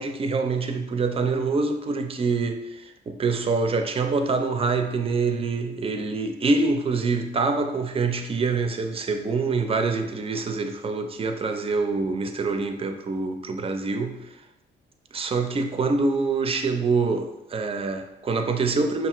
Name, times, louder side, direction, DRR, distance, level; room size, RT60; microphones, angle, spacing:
voice 1, 0.0-14.3 15.1-19.1, right 4 dB, 30° right, 6 dB, 0.4 m, -25 dB
5.4 x 2.4 x 2.9 m, 0.92 s
cardioid pair, 90°, 20 cm